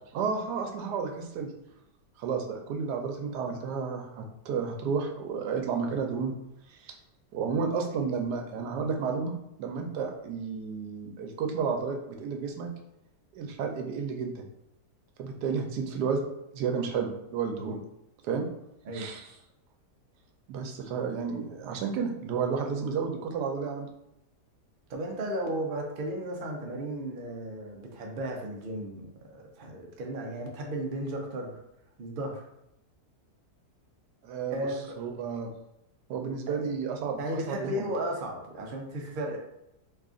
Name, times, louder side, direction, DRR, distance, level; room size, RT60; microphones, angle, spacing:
voice 1, 0.1-1.5 2.2-6.3 6.7-6.9 7.3-9.3 9.6-12.7 13.3-14.4 15.2-16.3 16.5-17.8 18.2-18.4 18.9-19.2 20.5-23.9 34.2-34.7 35.0-35.5 36.1-37.9, right 5 dB, 85° right, 3 dB, 1.2 m, -31 dB
voice 2, 18.8-19.4 24.9-31.6 32.0-32.4 34.5-35.0 36.5-36.7 37.2-39.4, right 1 dB, 60° right, 0 dB, 0.5 m, -35 dB
3.2 x 2.4 x 3.6 m, 0.82 s
omnidirectional pair, 1.7 m